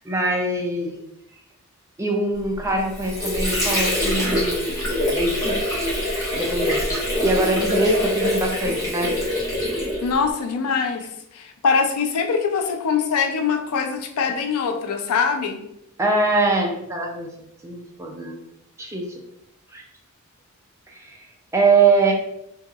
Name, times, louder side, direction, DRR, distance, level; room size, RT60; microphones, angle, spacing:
voice 1, 0.0-1.0 2.0-5.6 6.3-6.8 7.2-9.1 16.0-17.3 17.6-18.4 18.8-19.0 19.7-19.8 20.9-21.3 21.5-22.1, right 3 dB, 15° right, 0 dB, 0.4 m, -23 dB
Water / Sink (filling or washing), 2.6-10.3, left 1 dB, 15° left, 1.0 m, -24 dB
voice 2, 10.0-11.1 11.3-15.6, left 5 dB, 85° left, 5 dB, 0.4 m, -23 dB
2.8 x 2.8 x 2.3 m, 0.82 s
head